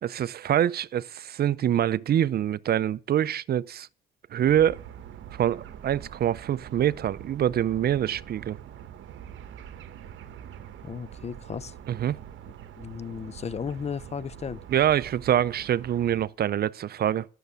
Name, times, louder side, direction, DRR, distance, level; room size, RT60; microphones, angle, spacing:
voice 1, 0.0-3.9 4.3-4.8 5.3-8.6 11.9-12.2 14.7-17.3, right 10 dB, 50° right, 0.5 m, -25 dB
sound 1, 4.5-16.3, right 9 dB, 75° right, 1.1 m, -44 dB
voice 2, 10.8-11.7 12.8-14.6, left 7 dB, 35° left, 0.5 m, -35 dB
11.5 x 6.7 x 8.1 m
cardioid pair, 90°, 20 cm